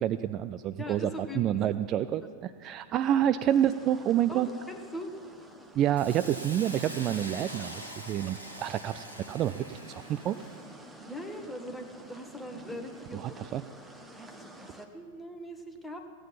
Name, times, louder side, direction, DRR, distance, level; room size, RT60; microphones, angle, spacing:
voice 1, 0.0-4.5 5.8-10.4 13.1-13.6, right 11 dB, 35° right, 12 dB, 0.3 m, -28 dB
voice 2, 0.8-1.7 2.2-2.3 4.3-5.1 11.1-13.3 14.2-16.0, left 1 dB, 5° left, 4 dB, 1.3 m, -41 dB
sound 1, 3.5-14.8, right 1 dB, 10° right, 1.1 m, -50 dB
Hiss, 6.0-10.7, equal, 85° right, 1.5 m, -44 dB
15.5 x 9.2 x 5.7 m, 2.2 s
figure-of-eight pair, 90°, 0 cm